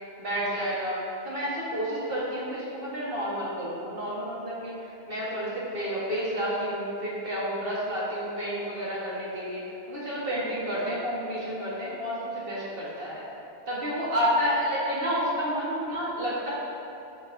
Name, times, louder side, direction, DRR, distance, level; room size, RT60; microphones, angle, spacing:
voice 1, 0.2-13.3 13.7-16.5, equal, 55° right, -7 dB, 1.5 m, -30 dB
13.5 x 4.7 x 2.6 m, 2.8 s
omnidirectional pair, 1.1 m